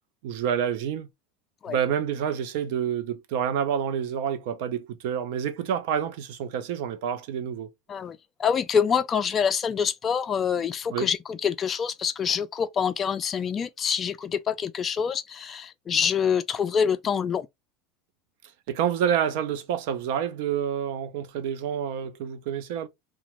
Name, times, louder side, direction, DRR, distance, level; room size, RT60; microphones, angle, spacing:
voice 1, 0.2-1.1 1.7-7.7 10.9-11.1 18.7-22.9, right 8 dB, 70° right, 0.6 m, -28 dB
voice 2, 7.9-17.5, left 7 dB, 30° left, 0.3 m, -26 dB
2.9 x 2.3 x 2.9 m
supercardioid pair, 125°, 0 cm